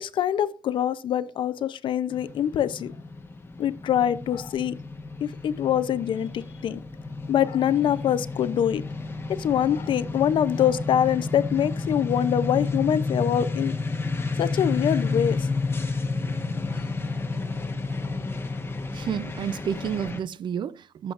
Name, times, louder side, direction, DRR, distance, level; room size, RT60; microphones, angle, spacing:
voice 1, 0.0-2.9 3.6-4.7 5.2-6.8 7.3-8.8 9.4-13.7 14.4-15.5, left 10 dB, 85° left, 0.6 m, -24 dB
sound 1, 2.1-20.2, left 3 dB, 30° left, 1.2 m, -31 dB
voice 2, 18.9-21.1, right 8 dB, 70° right, 0.5 m, -30 dB
14.0 x 7.5 x 2.5 m
cardioid pair, 90°, 8 cm